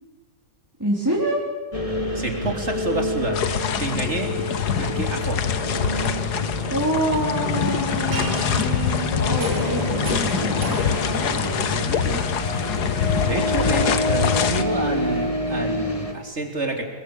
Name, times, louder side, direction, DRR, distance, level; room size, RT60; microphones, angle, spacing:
voice 1, 0.8-1.4 6.7-12.3, right 1 dB, 10° right, -4 dB, 4.5 m, -27 dB
sound 1, 1.7-16.1, left 1 dB, 20° left, 3.0 m, -27 dB
voice 2, 2.1-3.4 3.8-4.3 4.8-5.5 13.2-16.8, right 2 dB, 40° right, 4 dB, 4.0 m, -28 dB
Soft ocean waves sounds, 3.3-14.6, left 8 dB, 70° left, 1.7 m, -25 dB
sound 2, 7.9-15.3, right 3 dB, 75° right, 3.2 m, -38 dB
27.5 x 23.0 x 8.6 m, 1.3 s
omnidirectional pair, 1.8 m